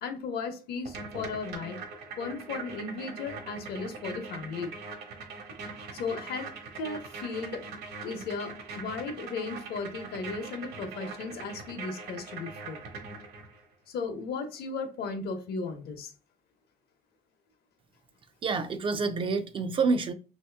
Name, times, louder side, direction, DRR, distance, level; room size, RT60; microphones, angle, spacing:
voice 1, 0.0-1.8 2.2-4.7 5.9-7.6 8.0-12.8 13.9-16.1, left 4 dB, 70° left, 0.8 m, -36 dB
sound 1, 0.8-13.6, right 4 dB, 70° right, 1.1 m, -42 dB
voice 2, 18.4-20.1, right 4 dB, 30° right, 0.4 m, -27 dB
3.1 x 2.8 x 3.4 m
cardioid pair, 155°, 17 cm